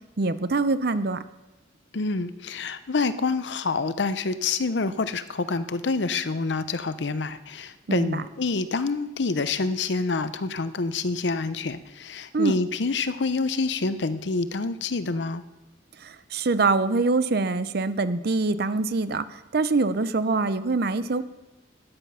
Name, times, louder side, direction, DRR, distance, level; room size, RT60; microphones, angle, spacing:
voice 1, 0.2-1.2 7.9-8.2 12.3-12.6 16.0-21.2, right 3 dB, 60° right, 13 dB, 0.6 m, -24 dB
voice 2, 1.9-15.4, left 3 dB, 70° left, 13 dB, 0.7 m, -27 dB
13.0 x 9.7 x 5.6 m, 1.0 s
head